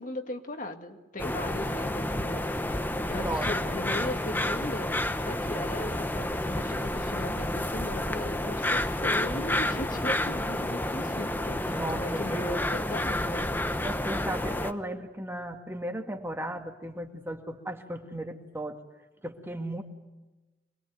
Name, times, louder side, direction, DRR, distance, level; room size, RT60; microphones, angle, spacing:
voice 1, 0.0-4.9 5.2-13.5, left 1 dB, 50° left, 5 dB, 2.1 m, -38 dB
sound 1, 1.2-14.7, left 1 dB, 10° left, 1.1 m, -30 dB
voice 2, 3.2-3.8 11.6-12.5 13.8-18.8 19.2-19.8, right 1 dB, 15° right, 4 dB, 2.1 m, -36 dB
25.5 x 21.0 x 9.4 m, 1.1 s
head